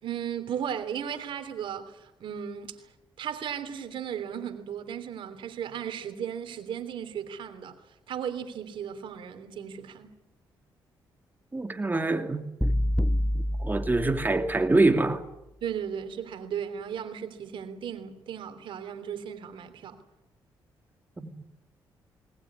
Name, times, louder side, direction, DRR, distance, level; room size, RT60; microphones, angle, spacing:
voice 1, 0.0-2.9 3.2-7.8 8.1-10.2 15.6-20.0, right 8 dB, 75° right, 3.1 m, -36 dB
voice 2, 11.5-12.4 13.3-15.2 21.2-21.4, right 2 dB, 20° right, 2.8 m, -25 dB
sound 1, 12.6-14.8, left 1 dB, ahead, 0.8 m, -28 dB
20.5 x 19.5 x 9.7 m
cardioid pair, 70°, 9 cm